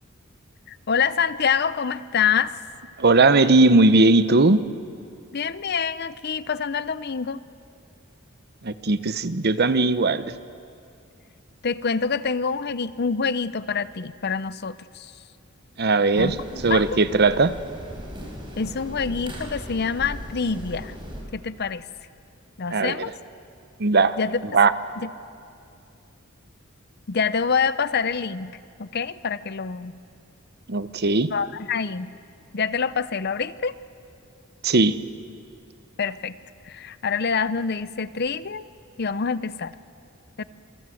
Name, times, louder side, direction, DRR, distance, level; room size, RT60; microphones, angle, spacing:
voice 1, 0.7-2.6 5.3-7.4 11.6-15.1 16.1-16.4 16.7-17.0 18.6-20.9 21.3-21.8 22.6-23.1 24.2-24.6 25.0-25.1 27.1-28.5 28.8-29.9 31.3-32.1 32.5-33.7 36.0-36.3 36.6-38.6 39.0-39.7 40.4-40.5, left 6 dB, 50° left, 15 dB, 0.7 m, -26 dB
voice 2, 3.0-4.6 8.6-10.3 15.8-16.4 16.6-17.5 22.7-23.0 23.8-24.2 24.5-24.7 30.7-31.3 34.6-35.0, right 3 dB, 50° right, 12 dB, 0.9 m, -18 dB
sound 1, 16.1-21.2, equal, 25° right, 5.6 m, -38 dB
27.5 x 23.5 x 7.8 m, 2.5 s
head